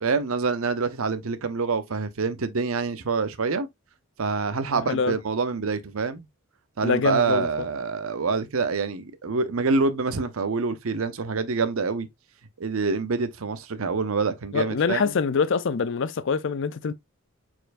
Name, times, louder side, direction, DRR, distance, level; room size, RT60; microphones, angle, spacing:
voice 1, 0.0-3.7 4.2-6.3 6.8-12.1 12.6-15.1, right 4 dB, 75° right, 0.7 m, -26 dB
voice 2, 4.7-5.2 6.8-7.5 14.5-16.9, left 5 dB, 55° left, 0.5 m, -25 dB
4.4 x 4.4 x 2.5 m
head